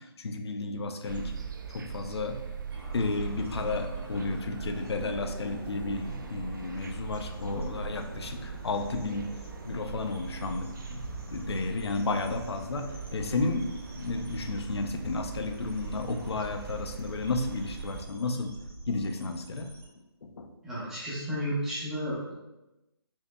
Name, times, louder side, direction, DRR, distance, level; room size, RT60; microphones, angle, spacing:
voice 1, 0.0-1.3 1.7-2.4 2.9-9.3 9.6-11.0 11.3-13.7 13.9-18.5 18.9-19.7 20.2-20.5, left 3 dB, 80° left, 5 dB, 0.5 m, -32 dB
sound 1, 1.0-18.1, right 6 dB, 50° right, 0.4 m, -41 dB
sound 2, 2.7-19.9, right 2 dB, 70° right, 1.4 m, -44 dB
voice 2, 20.6-22.3, equal, 5° right, -10 dB, 0.5 m, -32 dB
4.4 x 2.7 x 2.2 m, 0.99 s
hypercardioid pair, 165°, 13 cm